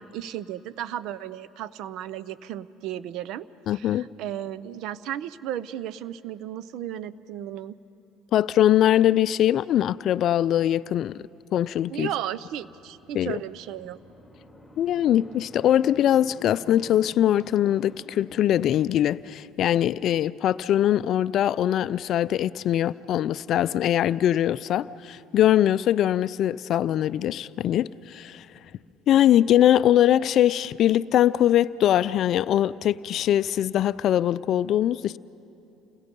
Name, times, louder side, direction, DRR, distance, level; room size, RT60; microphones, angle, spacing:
voice 1, 0.0-3.4 3.7-7.7 11.9-14.0, right 11 dB, 70° right, 17 dB, 0.6 m, -34 dB
voice 2, 3.7-4.1 8.3-11.1 11.5-12.1 13.1-13.4 14.8-28.5 29.1-35.2, left 11 dB, 55° left, 16 dB, 0.4 m, -22 dB
sound 1, 12.1-19.1, equal, ahead, 3.8 m, -50 dB
29.5 x 20.5 x 5.4 m, 2.8 s
cardioid pair, 105°, 0 cm